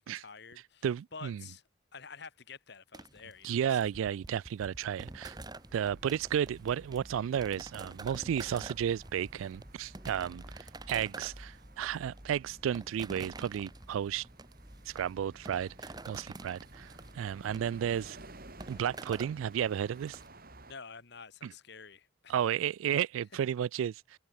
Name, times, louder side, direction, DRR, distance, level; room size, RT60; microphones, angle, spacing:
voice 1, 0.0-0.9 1.1-1.6 1.9-4.2 20.7-22.3, left 5 dB, 55° left, 1.9 m, -49 dB
voice 2, 0.8-1.4 3.4-5.4 5.7-14.3 14.9-18.2 18.7-20.2 21.4-21.5 22.3-24.2, right 9 dB, 85° right, 0.3 m, -33 dB
sound 1, 2.9-20.3, right 2 dB, 20° right, 1.4 m, -49 dB
sound 2, 4.9-20.7, right 2 dB, 50° right, 4.8 m, -56 dB
sound 3, 5.6-19.3, equal, 5° right, 1.6 m, -55 dB
head